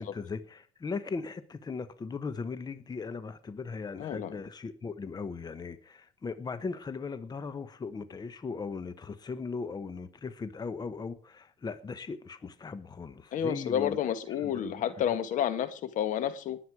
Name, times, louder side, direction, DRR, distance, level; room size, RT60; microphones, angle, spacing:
voice 1, 0.0-14.0 14.4-14.9, left 4 dB, 30° left, 1.2 m, -38 dB
voice 2, 4.0-4.3 13.3-16.6, left 9 dB, 65° left, 1.7 m, -30 dB
20.5 x 8.0 x 4.8 m
supercardioid pair, 80°, 14 cm